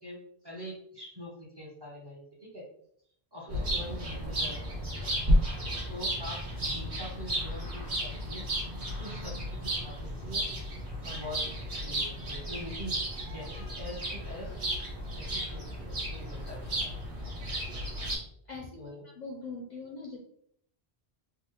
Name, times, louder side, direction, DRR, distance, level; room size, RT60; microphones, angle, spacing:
voice 1, 0.0-2.6 3.3-4.6 5.0-5.4 5.9-8.4 8.8-10.4 11.0-14.6 15.2-17.3 18.8-19.0, left 1 dB, 30° right, -4 dB, 0.6 m, -44 dB
sound 1, 3.5-18.2, equal, 55° right, 1.2 m, -33 dB
voice 2, 18.5-18.8 19.2-20.2, left 3 dB, 55° left, -1 dB, 0.5 m, -41 dB
3.4 x 2.0 x 3.0 m, 0.66 s
omnidirectional pair, 1.1 m